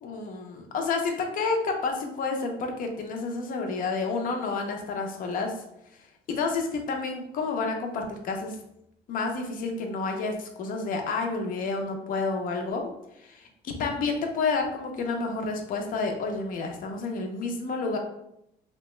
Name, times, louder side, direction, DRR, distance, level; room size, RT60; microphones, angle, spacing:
voice 1, 0.0-5.5 6.3-8.6 9.1-12.8 13.8-18.0, left 4 dB, 55° left, 3 dB, 0.6 m, -29 dB
2.9 x 2.2 x 3.0 m, 0.79 s
cardioid pair, 110°, 17 cm